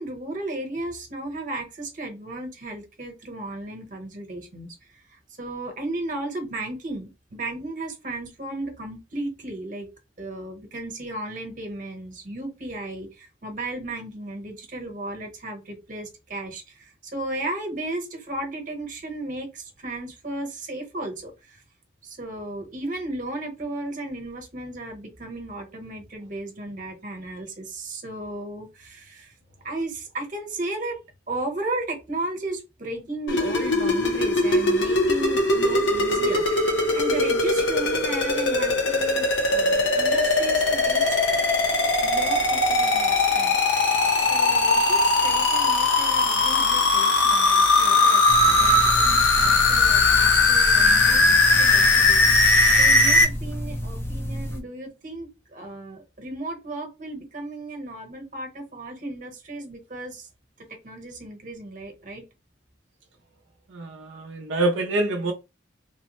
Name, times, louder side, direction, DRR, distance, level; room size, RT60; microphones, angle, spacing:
voice 1, 0.0-9.9 10.2-21.6 22.0-29.3 29.6-31.0 31.3-36.6 36.9-41.2 42.0-43.6 44.2-52.2 52.8-60.3 60.8-62.2, right 2 dB, 45° right, 1.0 m, -35 dB
sound 1, 33.3-53.2, left 2 dB, 70° left, 0.8 m, -20 dB
sound 2, 48.3-54.6, equal, 15° left, 0.4 m, -31 dB
voice 2, 63.7-65.3, right 2 dB, 75° right, 0.5 m, -26 dB
3.4 x 2.1 x 3.0 m
head